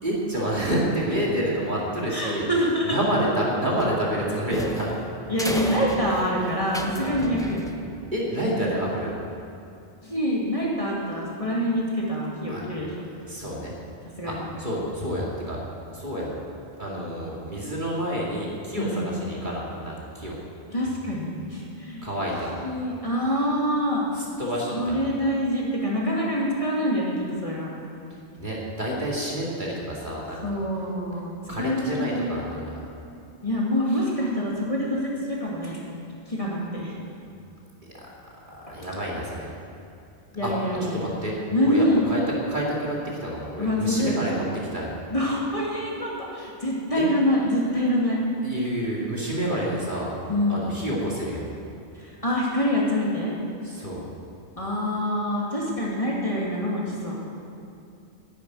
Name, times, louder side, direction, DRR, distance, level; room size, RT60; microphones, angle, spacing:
voice 1, 0.0-2.4 2.8-5.0 7.0-7.2 8.1-9.1 12.5-12.7 13.2-13.8 14.2-15.6 15.9-16.3 16.8-20.4 22.0-22.5 24.1-25.0 28.4-30.4 31.5-32.9 33.9-34.0 38.0-38.1 38.5-39.5 40.4-40.5 40.9-41.3 41.6-42.2 42.5-44.4 44.7-44.9 47.0-47.1 48.4-50.1 50.5-51.5 53.6-54.0, right 1 dB, 40° right, -4 dB, 2.7 m, -28 dB
voice 2, 2.1-3.0 5.3-7.6 10.0-13.0 14.2-14.5 18.7-19.1 20.7-22.1 22.5-24.0 24.7-27.7 30.4-32.3 33.4-35.8 36.3-37.0 38.7-38.8 40.3-41.1 41.5-42.1 43.6-44.2 45.1-48.2 50.3-50.6 52.0-53.3 54.6-57.2, equal, 30° left, -5 dB, 2.5 m, -26 dB
sound 1, 3.8-8.2, equal, 5° left, 0.6 m, -34 dB
10.5 x 10.5 x 9.0 m, 2.6 s
omnidirectional pair, 1.2 m